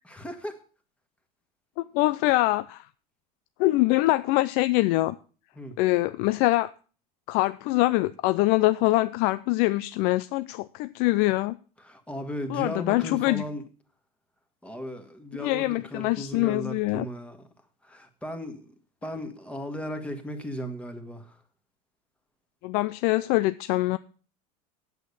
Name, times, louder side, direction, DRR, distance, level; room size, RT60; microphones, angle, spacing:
voice 1, 0.0-0.6 5.5-5.8 11.8-13.6 14.6-17.5 17.8-18.7 19.0-21.4, equal, 5° left, 1.7 m, -36 dB
voice 2, 1.8-2.9 3.6-5.1 5.8-6.7 7.3-11.6 12.5-13.4 15.4-17.0 22.6-24.0, left 19 dB, 60° left, 0.5 m, -24 dB
9.3 x 8.2 x 6.8 m
supercardioid pair, 130°, 18 cm